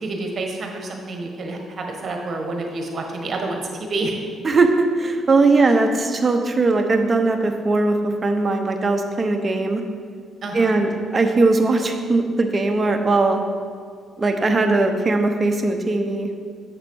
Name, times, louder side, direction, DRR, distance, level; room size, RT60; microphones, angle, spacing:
voice 1, 0.0-4.2 5.6-5.8 10.4-10.8, right 2 dB, 50° right, 2 dB, 1.3 m, -28 dB
voice 2, 4.4-9.8 10.5-13.4 14.2-16.3, right 3 dB, 30° right, 4 dB, 0.8 m, -19 dB
7.7 x 4.1 x 6.2 m, 2.1 s
cardioid pair, 90°, 0 cm